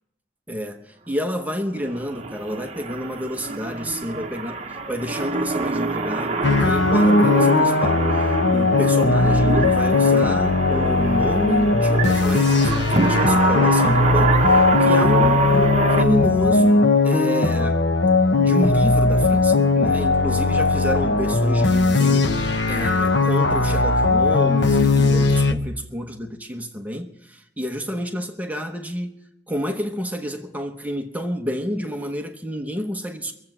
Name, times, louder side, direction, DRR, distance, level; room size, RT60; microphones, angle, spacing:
voice 1, 0.5-17.8 18.4-29.2 29.5-33.3, equal, 10° right, 0.9 m, -29 dB
sound 1, 1.8-16.0, right 3 dB, 40° right, 1.0 m, -25 dB
sound 2, 6.4-25.5, left 3 dB, 80° left, 1.0 m, -18 dB
23.0 x 7.9 x 6.0 m
head